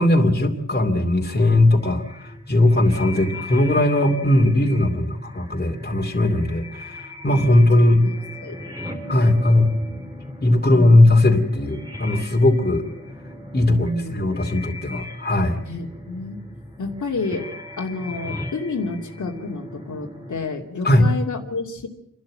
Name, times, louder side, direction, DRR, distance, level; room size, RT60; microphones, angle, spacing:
voice 1, 0.0-8.0 9.1-9.7 10.4-12.8 13.5-15.6 20.8-21.0, left 1 dB, 35° left, 3 dB, 2.6 m, -18 dB
sound 1, 1.3-20.5, left 1 dB, 15° right, 2.6 m, -38 dB
voice 2, 13.7-14.3 15.7-16.4 16.8-17.5 17.8-21.9, left 3 dB, 80° left, 1 dB, 2.7 m, -29 dB
29.5 x 12.0 x 7.6 m, 0.76 s
wide cardioid pair, 110°, 30 cm